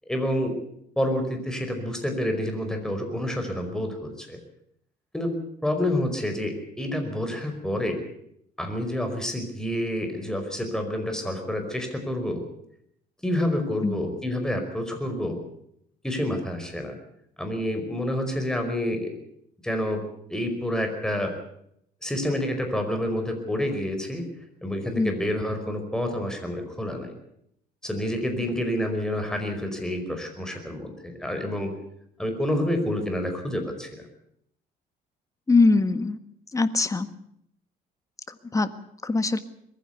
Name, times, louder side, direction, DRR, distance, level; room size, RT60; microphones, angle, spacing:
voice 1, 0.1-0.6 1.0-4.4 5.1-5.4 5.6-8.0 8.6-12.4 13.2-15.4 16.0-17.0 17.4-19.1 19.6-20.0 20.3-21.3 22.0-24.2 24.6-27.1 27.8-31.7 32.2-34.0, left 1 dB, 5° left, 4 dB, 5.1 m, -28 dB
voice 2, 35.5-36.2 36.5-37.1 38.5-38.7 39.0-39.4, left 3 dB, 20° left, 11 dB, 1.5 m, -21 dB
22.0 x 15.5 x 8.2 m, 0.72 s
cardioid pair, 110°, 17 cm